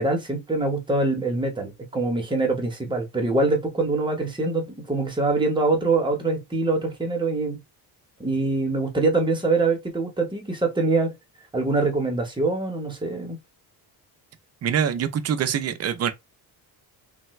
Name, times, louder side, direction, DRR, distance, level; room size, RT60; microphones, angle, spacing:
voice 1, 0.0-7.6 8.2-11.1 11.5-13.4, right 3 dB, 10° right, 0.8 m, -24 dB
voice 2, 14.6-16.1, right 8 dB, 40° right, 0.5 m, -24 dB
3.3 x 2.1 x 3.0 m
cardioid pair, 140°, 40 cm